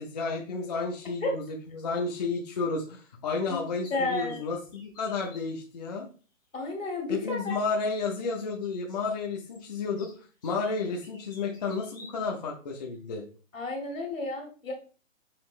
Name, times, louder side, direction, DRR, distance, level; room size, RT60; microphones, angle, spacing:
voice 1, 0.0-6.1 7.1-10.1 10.4-13.2, left 4 dB, 35° left, -1 dB, 0.6 m, -32 dB
sound 1, 3.5-5.4 6.9-7.0 8.2-12.3, left 1 dB, 10° left, 1.1 m, -53 dB
voice 2, 3.9-4.4 6.5-7.6 13.5-14.7, left 2 dB, 75° left, 1 dB, 1.8 m, -31 dB
5.8 x 3.0 x 2.4 m, 0.38 s
hypercardioid pair, 160°, 39 cm